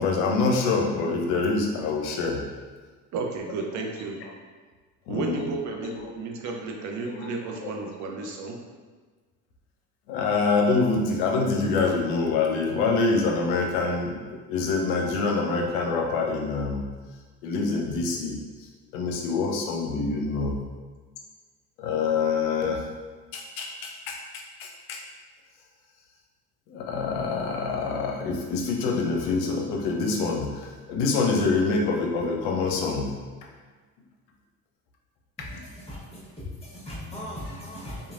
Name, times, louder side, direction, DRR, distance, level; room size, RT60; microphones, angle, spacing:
voice 1, 0.0-2.4 5.1-5.5 5.8-6.1 7.1-7.7 10.1-16.9 17.4-18.4 18.9-20.6 21.8-22.8 23.3-25.0 26.7-33.1 35.4-35.5, left 4 dB, 70° left, 1 dB, 0.7 m, -26 dB
voice 2, 3.1-4.2 5.1-8.6, right 4 dB, 40° right, 1 dB, 0.5 m, -33 dB
voice 3, 35.4-36.3 36.6-38.1, equal, 10° left, -8 dB, 1.2 m, -39 dB
3.0 x 2.3 x 2.4 m, 1.4 s
hypercardioid pair, 65°, 49 cm